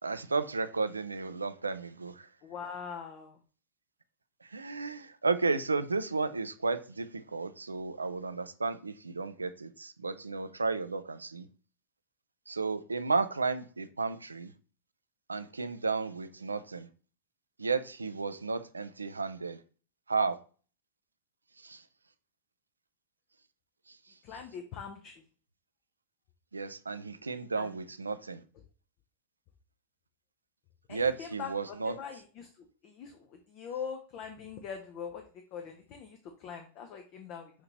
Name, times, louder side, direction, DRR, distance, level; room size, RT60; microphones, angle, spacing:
voice 1, 0.0-2.3 4.4-11.4 12.5-14.5 15.3-16.9 17.6-19.6 20.1-20.4 21.6-21.8 26.5-28.4 30.9-31.9, right 4 dB, 80° right, 0.3 m, -33 dB
voice 2, 2.4-3.3 24.2-25.1 27.6-27.7 30.9-32.5 32.8-33.1 33.5-35.2 35.5-36.2 36.4-37.5, left 7 dB, 40° left, 0.6 m, -42 dB
5.8 x 2.8 x 3.0 m
figure-of-eight pair, 90°, 0 cm